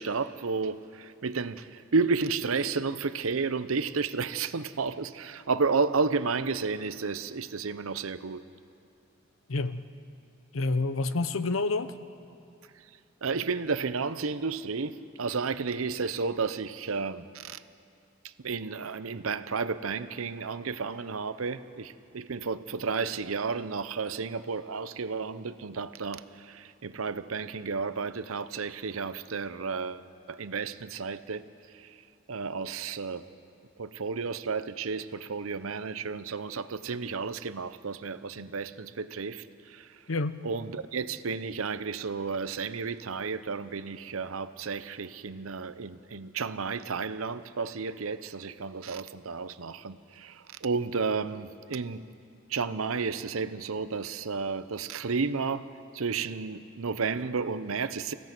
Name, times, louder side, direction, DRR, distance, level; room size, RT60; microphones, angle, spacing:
voice 1, 0.0-8.4 13.2-17.6 18.2-31.5 31.7-32.0 32.3-33.3 33.8-40.0 40.4-52.1 52.5-55.7 55.9-58.1, right 4 dB, 85° right, 13 dB, 0.7 m, -32 dB
voice 2, 9.5-9.8 10.5-11.9 40.1-40.4, left 3 dB, 75° left, 12 dB, 0.8 m, -28 dB
29.0 x 16.5 x 6.1 m, 2.6 s
head